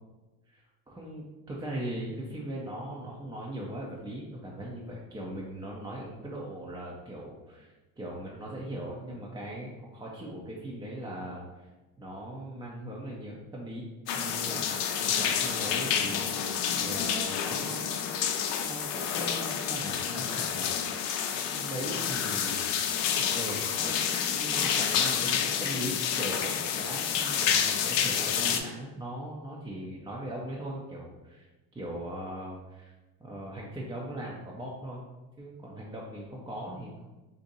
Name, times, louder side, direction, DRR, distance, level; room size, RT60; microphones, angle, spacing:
voice 1, 0.5-11.7 12.0-18.3 18.6-20.7 21.5-22.6 23.2-31.5 31.7-32.9 33.2-35.0 35.4-37.0, right 1 dB, 10° right, -4 dB, 0.4 m, -39 dB
sound 1, 14.1-28.6, left 8 dB, 70° left, 0.5 m, -29 dB
2.6 x 2.6 x 3.8 m, 1.1 s
supercardioid pair, 90°, 46 cm